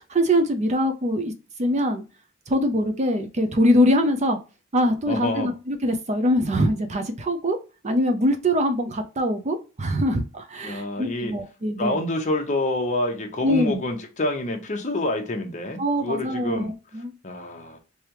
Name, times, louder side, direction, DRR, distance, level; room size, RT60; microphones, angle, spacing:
voice 1, 0.0-1.3 1.6-2.0 2.5-4.4 4.7-7.6 7.8-12.0 13.4-13.8 15.8-17.1, equal, 35° right, 0.6 m, -23 dB
voice 2, 5.1-5.5 10.6-11.3 11.8-16.7 17.2-17.8, left 2 dB, 35° left, 0.9 m, -27 dB
3.4 x 3.3 x 3.0 m
head